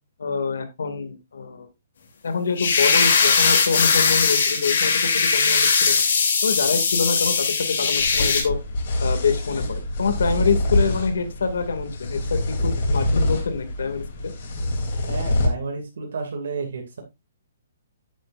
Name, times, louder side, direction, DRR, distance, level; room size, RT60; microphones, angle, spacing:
voice 1, 0.2-1.7 2.2-6.0 6.4-8.6 9.0-14.3, left 5 dB, 80° left, 8 dB, 2.3 m, -26 dB
sound 1, 2.6-8.4, left 5 dB, 55° left, 3.2 m, -20 dB
sound 2, 8.0-15.5, left 1 dB, 40° left, 3.1 m, -25 dB
voice 2, 15.1-17.0, right 4 dB, 65° right, 3 dB, 2.4 m, -31 dB
10.0 x 9.6 x 2.6 m, 0.22 s
hypercardioid pair, 180°, 0 cm